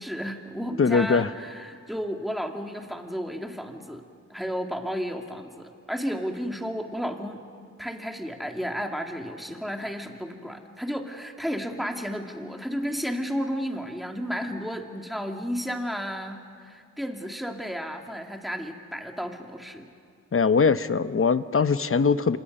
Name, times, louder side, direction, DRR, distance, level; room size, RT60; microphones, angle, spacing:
voice 1, 0.0-4.0 4.3-7.4 7.8-19.9, equal, ahead, 3 dB, 2.6 m, -33 dB
voice 2, 0.8-1.3 20.3-22.4, left 5 dB, 45° left, 13 dB, 0.9 m, -21 dB
29.0 x 26.0 x 5.5 m, 2.3 s
cardioid pair, 55°, 31 cm